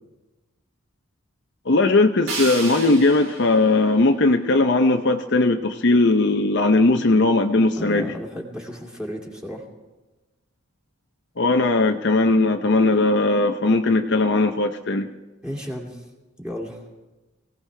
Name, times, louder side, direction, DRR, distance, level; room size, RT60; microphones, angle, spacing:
voice 1, 1.7-8.1 11.4-15.1, left 2 dB, 55° left, 5 dB, 0.7 m, -19 dB
sound 1, 2.3-5.2, right 4 dB, 75° right, 3.3 m, -35 dB
voice 2, 7.7-9.7 15.4-16.1 16.4-17.0, equal, 5° right, -1 dB, 2.4 m, -34 dB
24.0 x 17.0 x 3.4 m, 1.1 s
head